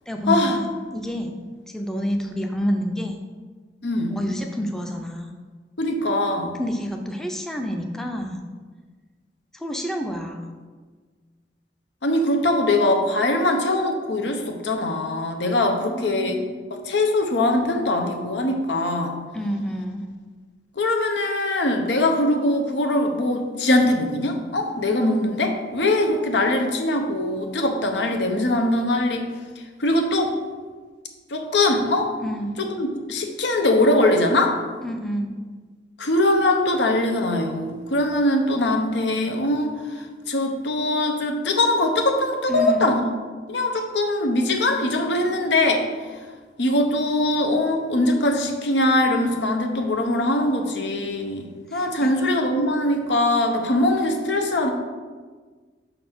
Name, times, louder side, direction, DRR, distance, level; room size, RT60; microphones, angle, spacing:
voice 1, 0.1-1.4 1.7-3.2 4.1-5.3 6.6-8.4 9.5-10.5 15.8-16.6 19.3-20.1 32.2-32.5 34.8-35.3 42.5-43.0 51.7-52.1, equal, 5° left, 3 dB, 0.5 m, -28 dB
voice 2, 3.8-4.2 5.8-6.6 12.0-16.4 16.7-19.1 20.8-29.3 29.8-30.3 31.3-32.2 32.6-34.6 36.0-39.8 40.3-43.0 43.5-45.9 46.6-54.7, left 1 dB, 90° left, 3 dB, 0.9 m, -22 dB
5.4 x 4.1 x 6.0 m, 1.4 s
head